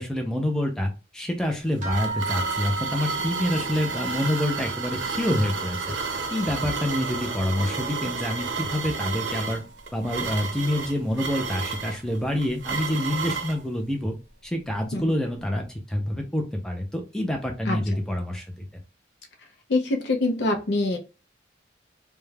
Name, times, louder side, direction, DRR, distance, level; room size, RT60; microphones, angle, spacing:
voice 1, 0.0-6.0 6.3-9.6 9.9-14.2 14.4-18.4 18.7-18.8, left 1 dB, 5° left, 2 dB, 0.4 m, -27 dB
sound 1, 1.4-13.6, right 4 dB, 80° right, 0.5 m, -32 dB
sound 2, 1.8-10.6 10.9-11.8 12.6-12.7 13.1-13.2, right 4 dB, 40° right, 0.7 m, -37 dB
voice 2, 19.7-21.0, left 2 dB, 65° left, 3 dB, 0.5 m, -24 dB
2.3 x 2.1 x 3.2 m, 0.30 s
head